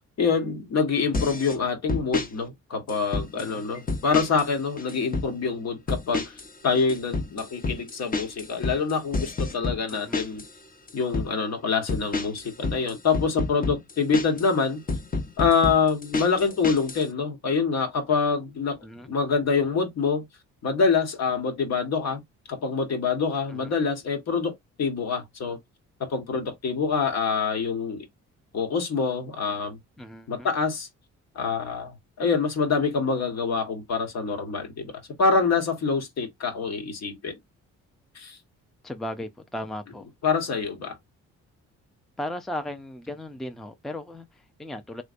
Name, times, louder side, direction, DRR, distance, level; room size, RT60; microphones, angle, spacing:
voice 1, 0.2-6.3 6.6-10.4 10.9-14.8 15.4-18.8 19.1-20.2 20.6-22.2 22.5-25.6 26.0-28.1 28.5-29.8 30.3-30.9 31.3-34.9 35.2-37.3 38.1-38.4 40.2-41.0, left 5 dB, 60° left, 1.3 m, -26 dB
voice 2, 1.0-1.4 3.4-3.7 9.9-10.2 14.3-14.4 18.8-19.1 23.5-23.8 30.0-30.5 38.8-40.1 42.2-45.0, left 1 dB, ahead, 0.5 m, -37 dB
sound 1, 1.1-1.6 1.9-2.3 2.9-3.5 3.9-4.5 4.8-5.3 5.9-6.5 6.7-10.5 10.9-11.3 11.9-14.5 14.9-17.0, left 3 dB, 30° left, 0.9 m, -29 dB
3.2 x 3.1 x 2.5 m
cardioid pair, 90°, 30 cm